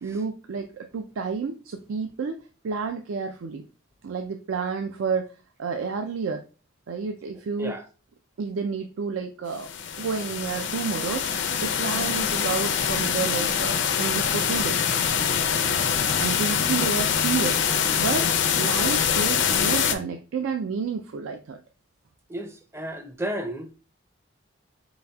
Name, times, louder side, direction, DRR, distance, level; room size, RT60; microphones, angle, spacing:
voice 1, 0.0-2.4 2.6-3.6 4.0-5.3 5.6-6.4 6.9-7.8 8.4-9.7 10.0-14.8 16.2-18.3 18.5-21.6, right 5 dB, 85° right, 0.4 m, -30 dB
sound 1, 9.6-19.9, left 7 dB, 65° left, 0.5 m, -24 dB
voice 2, 22.3-23.7, right 1 dB, 15° right, 0.4 m, -33 dB
4.7 x 4.0 x 2.2 m
head